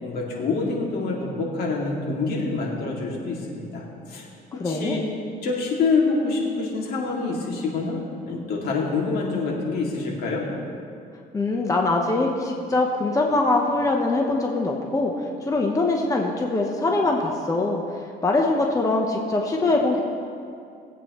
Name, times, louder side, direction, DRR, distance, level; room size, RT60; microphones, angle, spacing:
voice 1, 0.0-3.8 4.1-4.3 4.6-5.0 5.4-8.0 8.3-10.5, left 4 dB, 65° left, -2 dB, 2.5 m, -26 dB
voice 2, 4.6-5.0 11.3-15.1 15.5-17.8 18.2-20.0, left 2 dB, 20° left, 1 dB, 1.0 m, -23 dB
20.0 x 8.4 x 3.2 m, 2.4 s
cardioid pair, 110°, 17 cm